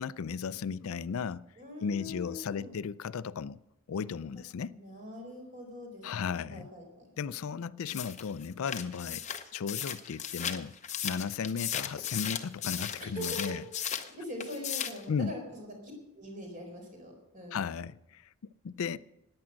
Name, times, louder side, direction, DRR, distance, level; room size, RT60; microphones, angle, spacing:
voice 1, 0.0-1.4 1.8-3.6 3.9-4.8 6.0-6.7 7.2-10.7 11.0-13.6 15.1-15.3 17.5-18.3 18.6-19.0, left 6 dB, 75° left, 0.4 m, -35 dB
voice 2, 1.6-2.7 4.7-7.1 13.0-17.6, left 1 dB, 35° right, 4.2 m, -43 dB
sound 1, 7.9-14.1 14.4-15.0, left 9 dB, 30° left, 0.7 m, -36 dB
14.5 x 9.8 x 6.3 m
head